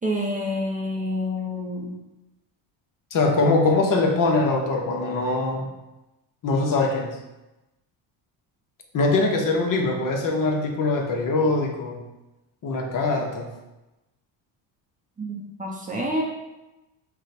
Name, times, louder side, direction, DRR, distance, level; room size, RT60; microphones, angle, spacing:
voice 1, 0.0-1.9 15.2-16.2, left 1 dB, 15° right, -3 dB, 0.6 m, -28 dB
voice 2, 3.1-5.7 6.4-7.2 8.9-12.0 12.6-13.5, left 3 dB, 40° left, 1 dB, 0.8 m, -22 dB
4.6 x 2.2 x 4.1 m, 1.0 s
cardioid pair, 100°, 48 cm